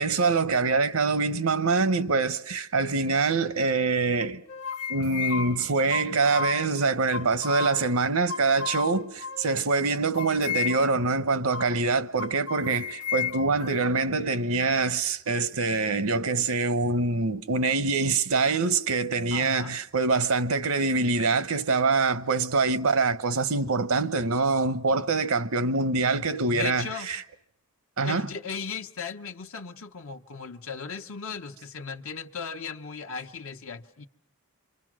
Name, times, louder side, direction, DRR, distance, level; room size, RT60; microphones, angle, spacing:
voice 1, 0.0-4.4 4.9-27.2 28.0-28.3, right 4 dB, 75° right, 0.9 m, -25 dB
sound 1, 4.2-6.7 7.1-8.0 8.3-9.7 10.2-11.1 11.5-11.7 12.2-14.1, left 6 dB, 85° left, 0.9 m, -33 dB
voice 2, 19.3-19.7 26.5-27.1 28.0-34.1, left 5 dB, 65° left, 1.0 m, -37 dB
28.0 x 25.5 x 6.2 m
head